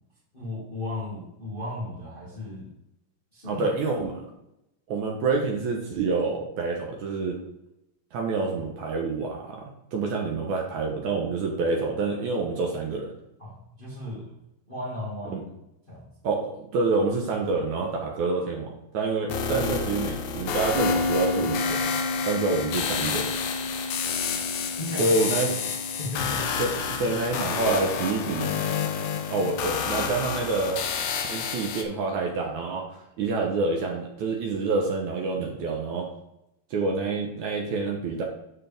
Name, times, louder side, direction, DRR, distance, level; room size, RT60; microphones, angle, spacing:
voice 1, 0.3-2.7 3.3-3.7 13.4-14.3 14.7-15.4 15.9-16.1 24.7-25.2 26.0-26.5 27.0-27.1, left 1 dB, 20° left, -6 dB, 1.4 m, -35 dB
voice 2, 3.4-4.2 4.9-7.4 8.1-9.6 9.9-13.1 15.3-15.4 16.2-21.8 22.2-23.3 25.0-25.5 26.6-28.5 29.3-30.8 31.2-36.1 36.7-38.2, right 3 dB, 70° right, 0 dB, 1.9 m, -27 dB
sound 1, 19.3-31.8, left 7 dB, 80° left, 1.7 m, -30 dB
sound 2, 20.7-30.2, left 1 dB, 5° left, 0.8 m, -33 dB
12.5 x 4.7 x 3.5 m, 0.86 s
omnidirectional pair, 4.6 m